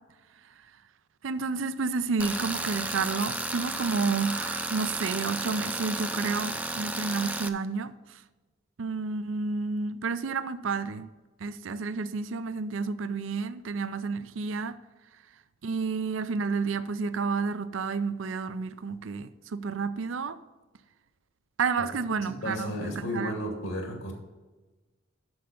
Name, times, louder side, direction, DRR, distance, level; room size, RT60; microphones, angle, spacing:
voice 1, 1.2-8.2 8.8-11.1 11.4-14.8 15.6-20.4 21.6-23.3, right 4 dB, 70° right, 13 dB, 0.5 m, -30 dB
Tools, 2.2-7.5, right 2 dB, 10° right, 0.5 m, -33 dB
voice 2, 22.2-24.1, equal, 80° left, 1 dB, 2.4 m, -33 dB
7.9 x 6.7 x 6.7 m, 1.2 s
head